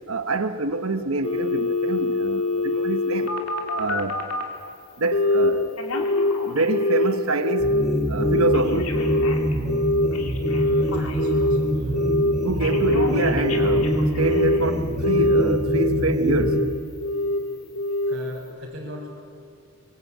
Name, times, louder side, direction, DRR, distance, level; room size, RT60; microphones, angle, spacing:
voice 1, 0.1-3.3 3.7-4.2 5.0-5.9 6.4-7.8 8.1-9.0 12.4-16.7, right 2 dB, 70° right, 1.1 m, -26 dB
Telephone, 1.2-4.5 5.1-5.5 5.8-7.1 7.4-7.8 8.2-11.6 11.9-12.3 12.6-14.7 15.0-15.9 16.3-16.6 17.0-17.4 17.8-18.1 18.5-18.6, left 1 dB, 90° left, 3.0 m, -23 dB
sound 1, 7.6-16.6, equal, ahead, 4.1 m, -26 dB
voice 2, 10.5-12.0 18.1-19.1, equal, 50° right, 4.4 m, -39 dB
24.5 x 22.0 x 8.6 m
head